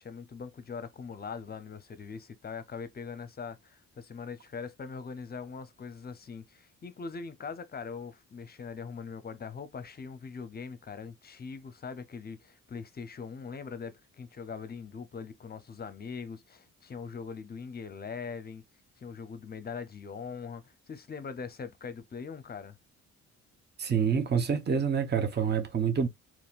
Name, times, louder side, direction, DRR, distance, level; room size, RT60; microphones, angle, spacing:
voice 1, 0.0-18.6 19.0-22.8, left 5 dB, 30° left, 0.6 m, -41 dB
voice 2, 23.8-26.1, right 7 dB, 35° right, 0.9 m, -27 dB
4.1 x 3.0 x 2.4 m
cardioid pair, 90°, 30 cm